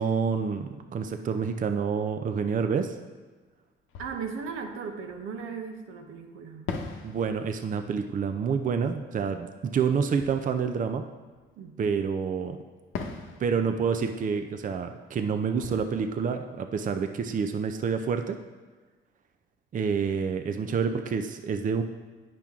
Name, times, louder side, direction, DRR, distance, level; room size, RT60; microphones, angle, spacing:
voice 1, 0.0-3.0 7.0-11.0 11.8-12.6 13.4-18.4 19.7-21.8, right 6 dB, 40° right, 7 dB, 0.5 m, -28 dB
Fireworks, 3.3-3.4 3.9-5.9 6.7-12.0 12.9-17.7, left 5 dB, 90° left, 0.8 m, -44 dB
voice 2, 4.0-6.7 11.6-11.9, right 5 dB, 85° right, 4 dB, 0.9 m, -37 dB
8.6 x 6.0 x 3.6 m, 1.3 s
cardioid pair, 90°, 20 cm